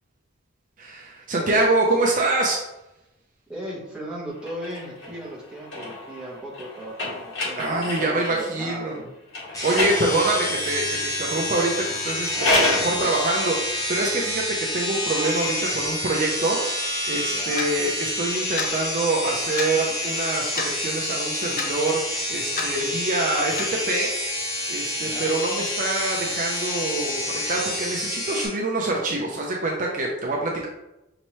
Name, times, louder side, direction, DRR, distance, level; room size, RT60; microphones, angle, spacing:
voice 1, 0.8-2.6 7.6-9.0 9.6-24.1 24.7-30.7, right 2 dB, 40° right, -1 dB, 0.5 m, -25 dB
voice 2, 3.5-9.1 12.4-13.1 17.3-17.6 25.0-25.3, right 1 dB, 5° right, -6 dB, 1.0 m, -37 dB
sound 1, 4.4-8.4 9.3-10.7 12.1-12.9, left 2 dB, 65° left, 1.5 m, -29 dB
sound 2, 9.5-28.5, left 1 dB, 15° left, 1.1 m, -28 dB
Clock, 17.6-17.7 18.6-18.7 19.6-19.7 20.6-20.8 21.6-21.7 22.6-22.7 23.6-23.7, left 4 dB, 45° left, 0.5 m, -28 dB
5.4 x 2.9 x 3.0 m, 0.94 s
head